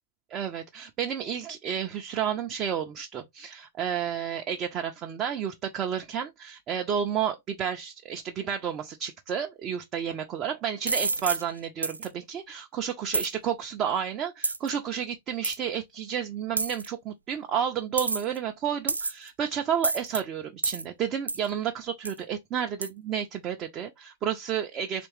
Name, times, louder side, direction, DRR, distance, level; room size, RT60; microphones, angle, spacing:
voice 1, 0.3-25.1, right 8 dB, 30° right, 0.5 m, -31 dB
Coins Collection, 10.9-11.4 11.8-12.1 13.1-13.3 14.4-14.7 15.4-15.6 16.6-16.9 18.0-18.4 18.9-19.3 19.8-20.2 20.6-20.8 21.3-21.5 22.1-22.2 22.8-22.9, right 3 dB, 80° right, 0.3 m, -28 dB
3.4 x 3.1 x 3.0 m
figure-of-eight pair, 105°, 0 cm